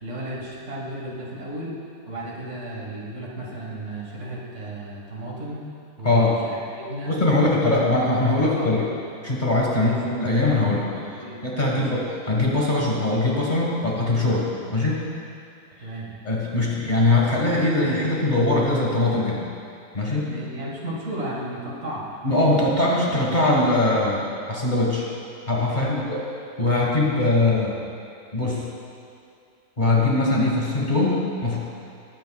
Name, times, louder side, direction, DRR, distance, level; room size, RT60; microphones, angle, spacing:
voice 1, 0.0-1.8 2.1-5.6 6.0-7.1 7.6-7.7 8.4-8.8 9.7-10.1 11.2-11.9 15.8-16.1 20.2-22.1 25.7-25.9, right 1 dB, 55° right, -4 dB, 2.1 m, -34 dB
voice 2, 6.0-6.4 7.1-8.8 9.2-15.1 15.8-15.9 16.2-19.4 19.9-20.3 22.2-25.1 25.5-26.2 26.6-27.8 28.3-28.6 29.8-31.6, left 2 dB, 30° left, -4 dB, 1.7 m, -21 dB
19.5 x 9.4 x 2.4 m, 2.5 s
omnidirectional pair, 1.5 m